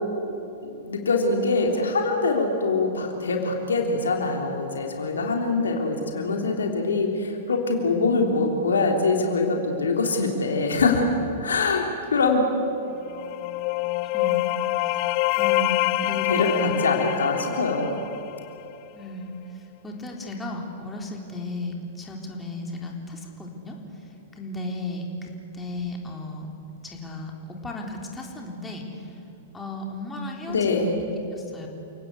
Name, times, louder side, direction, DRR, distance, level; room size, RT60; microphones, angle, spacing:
voice 1, 0.6-11.1 11.4-12.5 16.3-18.0 30.5-31.0, left 3 dB, 75° left, 2 dB, 3.4 m, -24 dB
sound 1, 13.0-18.7, left 19 dB, 45° left, 0.6 m, -26 dB
voice 2, 14.1-14.5 14.8-15.1 15.4-16.7 18.9-26.6 26.8-29.2 29.5-31.7, left 1 dB, 15° left, 0 dB, 3.9 m, -35 dB
29.0 x 18.5 x 8.3 m, 2.8 s
figure-of-eight pair, 105°, 0 cm